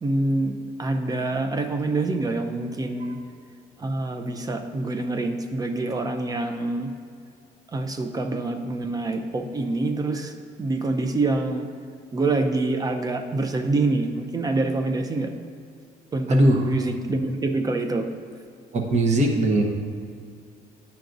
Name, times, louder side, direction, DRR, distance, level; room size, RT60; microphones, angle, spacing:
voice 1, 0.0-3.2 3.8-6.9 7.7-10.3 10.6-11.7 12.1-15.3 16.1-18.1, right 2 dB, 20° right, 6 dB, 0.5 m, -26 dB
voice 2, 16.3-16.6 18.7-19.6, right 1 dB, 45° right, 2 dB, 0.9 m, -19 dB
9.2 x 5.7 x 2.6 m, 2.3 s
cardioid pair, 110°, 17 cm